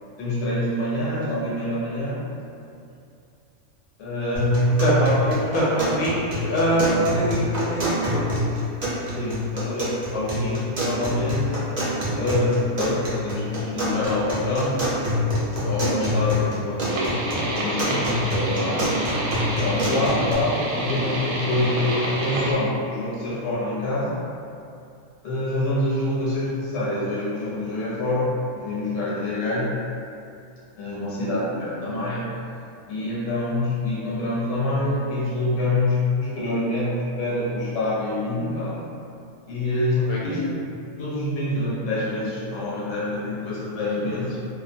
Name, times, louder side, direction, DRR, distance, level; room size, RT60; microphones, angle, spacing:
voice 1, 0.2-2.2 4.0-5.1 9.1-11.7 12.1-14.8 15.6-17.2 17.6-19.0 19.6-24.2 25.2-29.8 30.8-32.4 32.9-38.8 39.5-40.6 41.0-44.4, left 1 dB, 60° left, -8 dB, 0.9 m, -26 dB
sound 1, 4.4-20.4, left 1 dB, 50° right, 0.4 m, -27 dB
voice 2, 4.8-8.3 40.1-40.2, equal, 90° left, -6 dB, 1.1 m, -23 dB
sound 2, 16.9-22.5, right 1 dB, 85° right, 1.0 m, -28 dB
2.4 x 2.1 x 2.6 m, 2.5 s
omnidirectional pair, 1.4 m